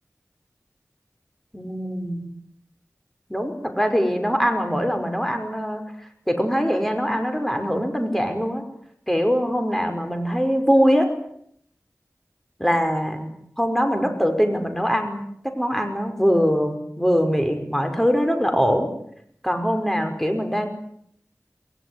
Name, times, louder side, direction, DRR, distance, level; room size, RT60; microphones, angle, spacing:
voice 1, 1.5-2.3 3.3-5.8 6.3-8.6 9.1-11.1 12.6-18.9 19.4-20.7, equal, 5° left, 6 dB, 5.4 m, -22 dB
24.0 x 22.5 x 9.8 m, 0.69 s
wide cardioid pair, 50°, 5 cm